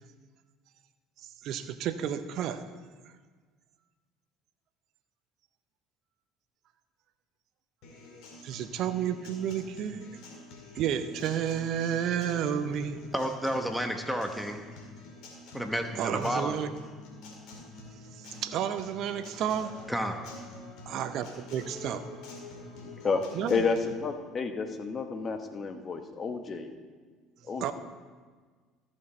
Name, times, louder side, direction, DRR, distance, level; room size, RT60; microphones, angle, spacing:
voice 1, 1.4-2.6 8.4-10.1 10.7-13.0 16.0-16.7 17.9-19.8 20.9-22.1 23.3-23.6 27.6-27.7, right 9 dB, 60° right, 10 dB, 0.6 m, -31 dB
Acoustic guitar, 7.8-23.8, left 2 dB, 65° left, 2.0 m, -47 dB
voice 2, 13.1-14.6 15.5-16.5 19.9-20.2, equal, ahead, 5 dB, 1.2 m, -31 dB
voice 3, 23.0-26.7 27.4-27.7, left 4 dB, 35° left, 7 dB, 1.1 m, -31 dB
14.0 x 6.2 x 4.4 m, 1.5 s
hypercardioid pair, 70°, 0 cm